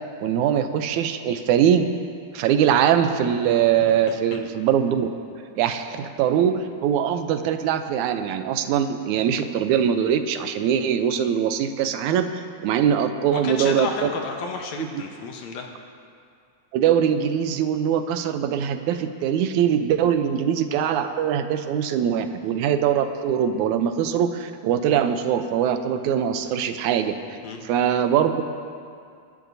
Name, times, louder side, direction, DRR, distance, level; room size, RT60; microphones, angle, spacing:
voice 1, 0.2-1.8 2.3-5.1 5.6-14.1 16.7-27.1 27.7-28.4, right 9 dB, 80° right, 8 dB, 2.1 m, -22 dB
voice 2, 4.1-4.4 13.3-15.7 27.4-27.6, left 5 dB, 70° left, 2 dB, 2.2 m, -32 dB
24.5 x 12.0 x 2.7 m, 2.3 s
omnidirectional pair, 3.4 m